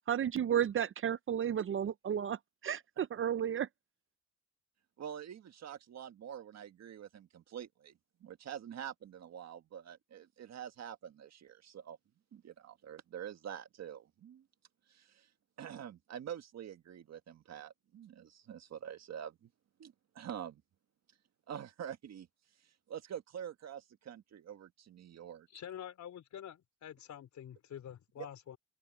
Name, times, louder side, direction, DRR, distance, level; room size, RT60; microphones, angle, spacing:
voice 1, 0.1-3.7, right 9 dB, 45° right, 0.6 m, -33 dB
voice 2, 5.0-7.9 8.2-12.0 12.3-14.4 14.9-15.3 15.6-19.5 19.8-20.6 21.5-22.3 22.6-25.5 28.2-28.3, right 9 dB, 60° right, 1.7 m, -46 dB
voice 3, 25.5-28.6, left 10 dB, 65° left, 4.6 m, -47 dB
cardioid pair, 90°, 30 cm